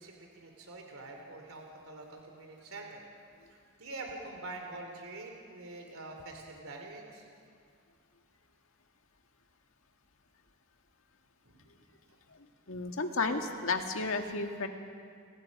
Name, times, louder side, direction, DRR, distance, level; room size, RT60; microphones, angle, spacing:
voice 1, 0.0-3.0 3.8-7.3 11.4-11.7, right 2 dB, 85° right, 2 dB, 3.1 m, -45 dB
voice 2, 12.7-14.7, left 3 dB, 75° left, 4 dB, 1.8 m, -32 dB
29.5 x 18.5 x 5.3 m, 2.2 s
head